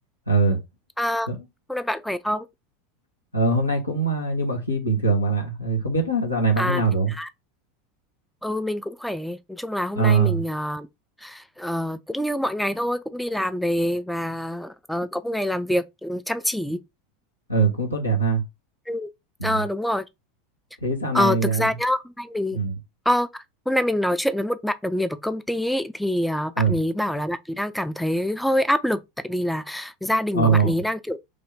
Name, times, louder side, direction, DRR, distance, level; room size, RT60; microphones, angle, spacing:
voice 1, 0.3-0.6 1.3-1.4 3.3-7.1 9.9-10.4 17.5-18.4 19.4-19.6 20.8-21.6 22.5-22.8 26.6-26.8 30.3-30.7, right 4 dB, 85° left, 1.1 m, -22 dB
voice 2, 1.0-1.3 1.7-2.5 6.6-6.8 7.1-7.3 8.4-10.9 11.2-16.8 18.9-19.1 19.4-20.0 21.1-22.6 23.1-31.2, equal, ahead, 0.3 m, -26 dB
3.3 x 2.7 x 4.2 m
figure-of-eight pair, 80°, 0 cm